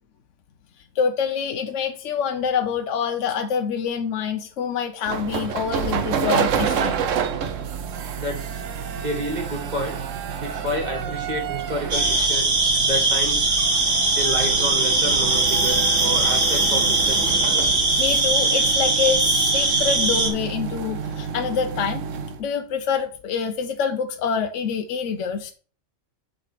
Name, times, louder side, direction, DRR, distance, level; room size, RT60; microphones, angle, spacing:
voice 1, 1.0-7.0 18.0-22.1 22.4-25.5, left 6 dB, 75° left, 6 dB, 1.1 m, -26 dB
sound 1, 5.1-22.4, right 7 dB, 85° right, 1.1 m, -29 dB
voice 2, 8.2-8.6 9.0-10.0 10.4-12.5 12.9-13.6 14.1-17.3, equal, 35° right, 1 dB, 2.1 m, -30 dB
sound 2, 11.9-20.3, right 2 dB, 65° right, 1.9 m, -20 dB
7.8 x 4.2 x 4.9 m, 0.41 s
omnidirectional pair, 1.3 m